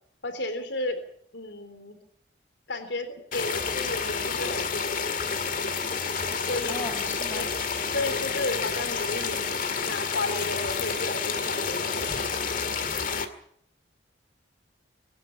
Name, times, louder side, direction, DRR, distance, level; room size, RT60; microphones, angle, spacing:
voice 1, 0.2-1.0 1.3-2.0 2.7-5.0 6.5-6.9 7.3-7.5 7.9-9.5 9.8-12.3, left 2 dB, 75° left, 7 dB, 3.6 m, -33 dB
sound 1, 3.3-13.3, left 5 dB, 45° left, 2.1 m, -29 dB
voice 2, 6.7-7.8, left 2 dB, 15° left, 3 dB, 5.9 m, -38 dB
25.5 x 11.0 x 10.0 m, 0.67 s
head